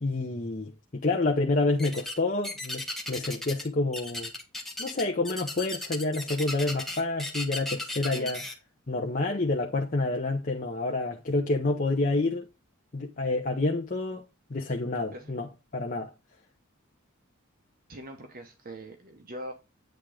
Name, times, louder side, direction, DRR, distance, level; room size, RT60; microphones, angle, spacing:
voice 1, 0.0-4.3 4.8-8.4 8.9-12.5 12.9-16.1, left 2 dB, 40° left, 0.8 m, -28 dB
sound 1, 1.8-2.2 2.4-3.7 3.9-8.5, left 2 dB, ahead, 1.4 m, -35 dB
voice 2, 17.9-19.5, right 1 dB, 45° right, 1.0 m, -42 dB
9.0 x 3.7 x 5.0 m
head